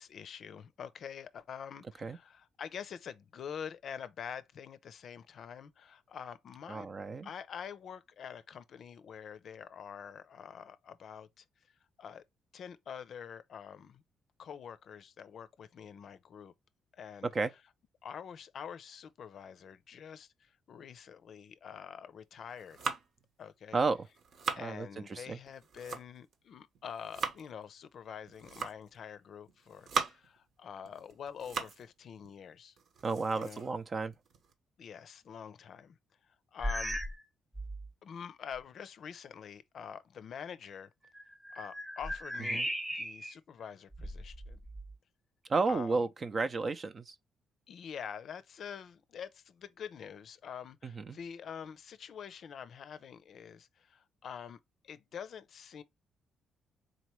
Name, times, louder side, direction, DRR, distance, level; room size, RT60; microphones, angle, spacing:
voice 1, 0.0-6.9 7.2-11.4 12.0-12.2 12.5-14.0 14.4-16.5 16.9-17.3 18.0-22.8 23.4-23.8 24.5-32.8 33.4-33.6 34.8-36.0 36.2-37.0 38.0-40.9 41.5-44.6 45.7-46.0 47.7-54.6 54.8-55.8, left 7 dB, 60° left, 0.5 m, -46 dB
voice 2, 6.7-7.3 17.3-17.5 23.7-24.0 24.6-25.4 33.0-34.1 42.5-42.7 45.5-47.1 51.0-51.2, right 4 dB, 40° right, 0.6 m, -32 dB
sound 1, 22.4-23.3 24.0-24.7 25.5-26.3 26.8-27.5 28.3-29.0 29.5-30.4 30.9-31.9 32.2-32.3 32.8-34.5, right 5 dB, 65° right, 1.0 m, -39 dB
sound 2, 36.6-37.3 37.5-37.9 38.6-38.7 41.0-43.4 43.9-44.9, equal, 15° right, 0.9 m, -37 dB
4.0 x 3.1 x 3.0 m
cardioid pair, 90°, 0 cm